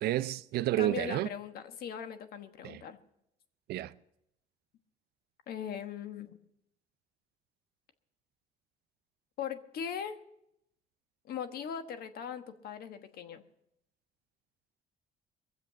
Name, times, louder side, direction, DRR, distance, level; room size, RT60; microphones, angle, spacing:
voice 1, 0.0-1.3 2.6-2.8 3.7-3.9, right 14 dB, 70° right, 0.5 m, -30 dB
voice 2, 0.8-3.0 5.5-6.4 9.4-10.2 11.2-13.4, left 8 dB, 65° left, 1.3 m, -39 dB
22.0 x 7.5 x 7.4 m
cardioid pair, 110°, 17 cm